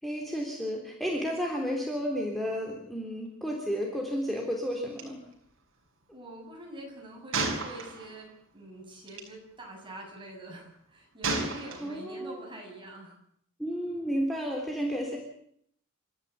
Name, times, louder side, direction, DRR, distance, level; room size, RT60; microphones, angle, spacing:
voice 1, 0.0-5.2 11.8-12.4 13.6-15.2, equal, ahead, -1 dB, 3.5 m, -32 dB
Gunshot gunfire, 5.0-5.1 5.3-5.5 7.3-8.3 9.1-9.3 11.2-12.2, right 3 dB, 65° right, 4.7 m, -32 dB
voice 2, 6.1-13.2, right 1 dB, 25° right, 0 dB, 7.4 m, -45 dB
29.0 x 14.0 x 8.4 m, 0.68 s
head